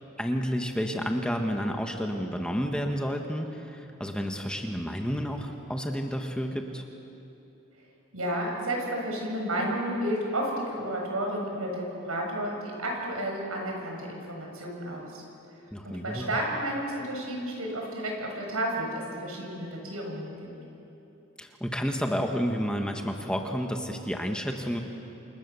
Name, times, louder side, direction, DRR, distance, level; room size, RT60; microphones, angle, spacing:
voice 1, 0.2-6.8 15.7-16.3 21.4-24.8, equal, 5° left, 3 dB, 1.5 m, -30 dB
voice 2, 8.1-15.2 15.8-20.5, right 1 dB, 90° right, 0 dB, 6.9 m, -32 dB
28.0 x 28.0 x 7.1 m, 2.9 s
head